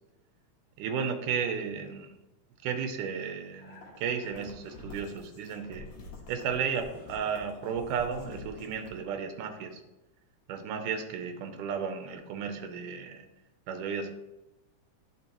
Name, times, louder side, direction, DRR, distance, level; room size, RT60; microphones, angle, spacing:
voice 1, 0.8-2.1 2.6-5.9 6.3-9.7 10.5-13.3 13.7-14.1, right 6 dB, 85° right, 7 dB, 2.3 m, -33 dB
sound 1, 3.5-9.0, left 3 dB, 70° left, 2.3 m, -48 dB
9.2 x 5.2 x 3.0 m, 0.98 s
omnidirectional pair, 3.6 m